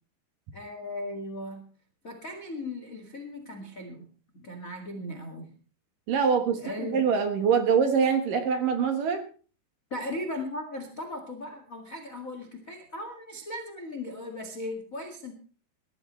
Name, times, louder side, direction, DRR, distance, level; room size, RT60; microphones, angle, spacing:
voice 1, 0.5-1.7 2.0-4.1 4.3-5.5 6.6-7.0 9.9-15.3, left 1 dB, 55° left, 4 dB, 0.8 m, -37 dB
voice 2, 6.1-9.2, right 6 dB, 65° right, 5 dB, 2.5 m, -24 dB
21.0 x 13.0 x 3.2 m, 0.38 s
omnidirectional pair, 5.2 m